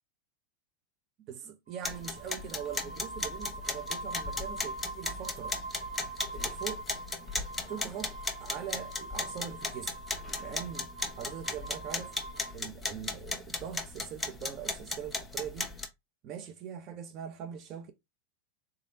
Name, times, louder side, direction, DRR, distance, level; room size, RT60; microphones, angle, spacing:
voice 1, 1.3-5.6 6.3-6.9 7.7-9.9 10.4-12.1 12.5-15.7 16.2-17.9, right 8 dB, 45° right, 0.6 m, -42 dB
sound 1, 1.7-12.5, right 2 dB, 80° right, 1.7 m, -43 dB
sound 2, 1.8-15.9, left 3 dB, 10° left, 0.9 m, -37 dB
3.7 x 3.4 x 2.6 m
hypercardioid pair, 105°, 0 cm